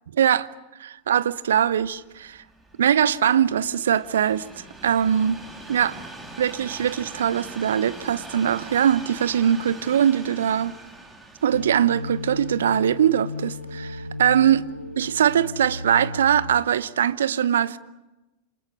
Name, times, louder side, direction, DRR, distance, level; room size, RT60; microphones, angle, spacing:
voice 1, 0.2-0.5 0.8-2.4 2.8-4.4 4.8-5.4 5.7-6.0 6.4-10.8 11.4-14.7 15.0-17.8, right 9 dB, 65° right, 0.8 m, -21 dB
Train, 1.5-14.7 15.4-15.5, right 2 dB, 10° right, 4.1 m, -43 dB
sound 1, 11.5-16.6, left 2 dB, 90° right, 1.0 m, -35 dB
27.5 x 27.0 x 6.7 m
figure-of-eight pair, 90°, 0 cm